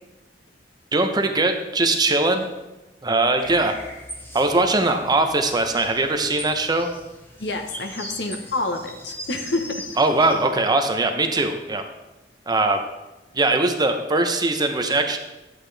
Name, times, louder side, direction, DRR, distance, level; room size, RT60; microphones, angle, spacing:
voice 1, 0.9-2.4 3.0-3.8 4.3-6.9 10.0-11.8 12.5-12.8 13.3-15.2, right 2 dB, 25° right, 5 dB, 0.8 m, -21 dB
sound 1, 3.4-10.4, equal, 15° left, 1.5 m, -40 dB
voice 2, 7.4-9.8, left 2 dB, 70° left, 5 dB, 1.0 m, -28 dB
11.0 x 8.1 x 3.4 m, 1.0 s
head